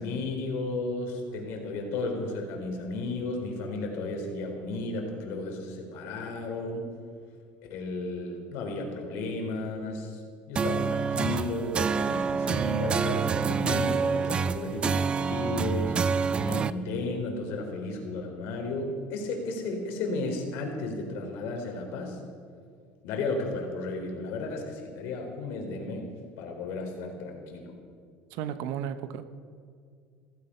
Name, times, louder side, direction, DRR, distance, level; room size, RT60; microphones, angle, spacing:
voice 1, 0.0-6.9 7.7-10.2 10.5-16.0 16.4-22.2 23.0-26.1 26.4-27.7, left 2 dB, 65° left, 2 dB, 3.8 m, -33 dB
sound 1, 10.6-16.7, right 6 dB, 25° right, 0.4 m, -27 dB
voice 2, 28.3-29.4, right 9 dB, 70° right, 12 dB, 1.0 m, -34 dB
16.0 x 15.0 x 5.7 m, 2.2 s
cardioid pair, 150°, 4 cm